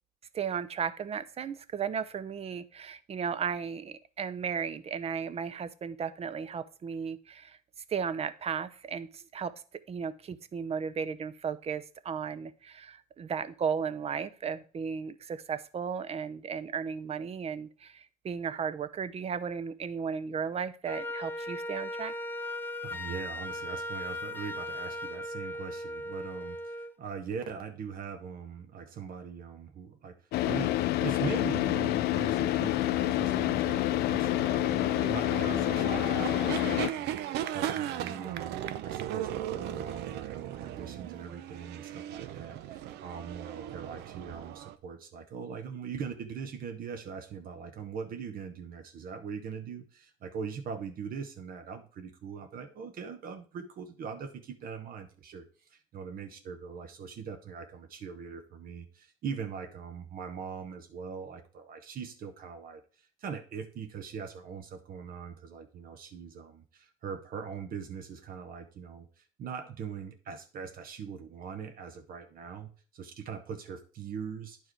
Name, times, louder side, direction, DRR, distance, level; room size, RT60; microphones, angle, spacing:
voice 1, 0.3-7.6 7.9-9.5 9.9-22.1, right 6 dB, 35° right, 13 dB, 0.6 m, -35 dB
Wind instrument woodwind instrument, 20.9-27.0, left 1 dB, 10° left, 0.5 m, -38 dB
voice 2, 22.8-74.6, right 6 dB, 60° right, 7 dB, 1.0 m, -41 dB
Car / Idling, 30.3-36.9, left 15 dB, 75° left, 0.5 m, -28 dB
sound 1, 31.1-44.8, right 11 dB, 85° right, 0.6 m, -38 dB
10.0 x 4.6 x 4.5 m, 0.38 s
cardioid pair, 110°, 17 cm